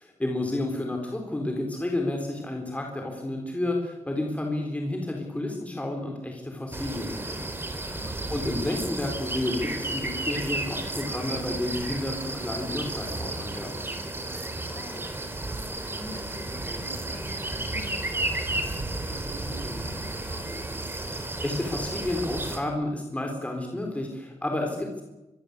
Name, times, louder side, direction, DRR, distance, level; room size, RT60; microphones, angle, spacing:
voice 1, 0.0-7.4 7.8-13.8 21.0-25.0, left 1 dB, 10° left, 2 dB, 4.1 m, -31 dB
sound 1, 6.7-22.6, right 2 dB, 20° right, 3.6 m, -33 dB
voice 2, 7.7-8.1 14.4-15.1 15.8-20.7, left 1 dB, 25° left, 7 dB, 4.9 m, -45 dB
24.5 x 22.0 x 8.2 m, 1.0 s
wide cardioid pair, 135°, 12 cm